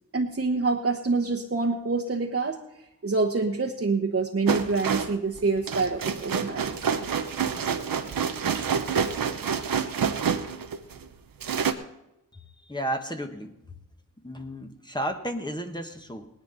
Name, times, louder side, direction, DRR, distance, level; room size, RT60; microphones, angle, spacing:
voice 1, 0.1-2.6 3.0-6.7, right 3 dB, 40° right, 0 dB, 1.1 m, -26 dB
sound 1, 4.5-11.0 11.4-11.7, right 7 dB, 90° right, 0.9 m, -27 dB
voice 2, 12.3-13.5 14.2-16.3, right 1 dB, 15° left, 5 dB, 1.3 m, -33 dB
18.5 x 10.5 x 4.0 m, 0.88 s
cardioid pair, 60°, 34 cm